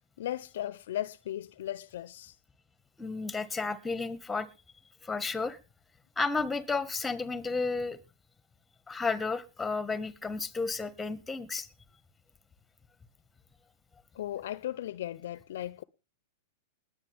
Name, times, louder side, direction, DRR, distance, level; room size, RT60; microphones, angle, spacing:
voice 1, 0.2-2.3 14.1-15.8, left 12 dB, 70° left, 0.8 m, -36 dB
voice 2, 3.0-4.5 5.0-5.6 6.2-8.0 8.9-11.7, left 4 dB, 10° left, 1.5 m, -32 dB
20.5 x 8.5 x 3.5 m
hypercardioid pair, 115°, 0 cm